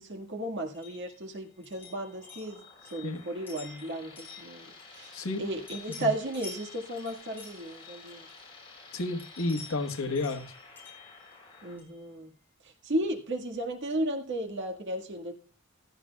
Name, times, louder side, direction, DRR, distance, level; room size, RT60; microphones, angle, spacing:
voice 1, 0.0-2.6 2.9-8.3 11.6-12.3 12.6-15.4, right 1 dB, 60° right, 1.7 m, -34 dB
sound 1, 0.7-5.4 5.7-8.6 9.0-12.0, left 4 dB, 10° left, 7.2 m, -50 dB
sound 2, 1.7-11.8, left 3 dB, 25° left, 6.0 m, -52 dB
voice 2, 5.1-5.5 6.0-6.1 8.9-10.5, left 2 dB, 75° left, 1.3 m, -31 dB
16.0 x 13.0 x 2.3 m
head